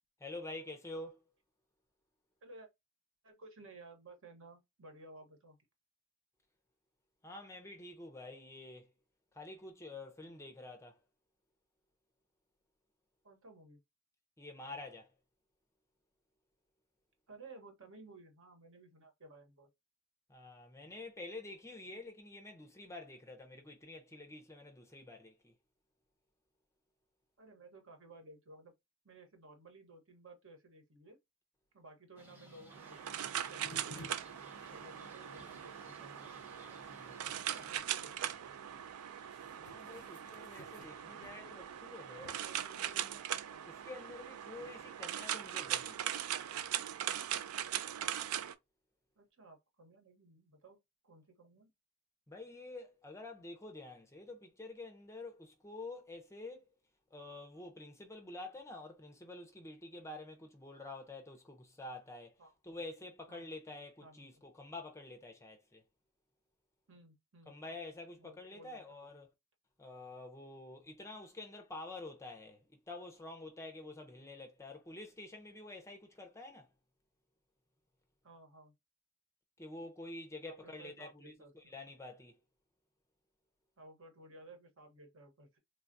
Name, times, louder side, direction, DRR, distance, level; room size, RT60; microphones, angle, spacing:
voice 1, 0.2-1.3 7.2-8.9 9.3-11.0 14.4-15.1 20.3-25.5 36.8-37.1 39.6-43.3 43.6-46.0 52.3-56.7 57.1-62.3 62.6-65.8 67.5-69.3 69.8-76.7 79.6-82.4, left 2 dB, 15° left, 0.5 m, -48 dB
voice 2, 3.2-5.6 13.2-13.8 17.3-19.7 27.4-28.7 29.0-31.2 31.7-34.0 34.7-36.3 37.0-38.8 42.1-42.8 49.2-50.8 51.0-51.7 61.8-62.0 62.4-62.5 63.3-63.4 64.0-64.3 66.9-67.8 68.2-69.0 76.2-76.3 78.2-78.7 80.4-81.7 83.8-85.6, right 2 dB, 60° right, 1.0 m, -57 dB
sound 1, 32.2-37.8, equal, 10° right, 0.8 m, -58 dB
sound 2, 32.7-48.5, right 10 dB, 75° right, 0.3 m, -40 dB
sound 3, 33.6-45.0, left 2 dB, 75° left, 0.5 m, -59 dB
3.3 x 2.2 x 2.5 m
head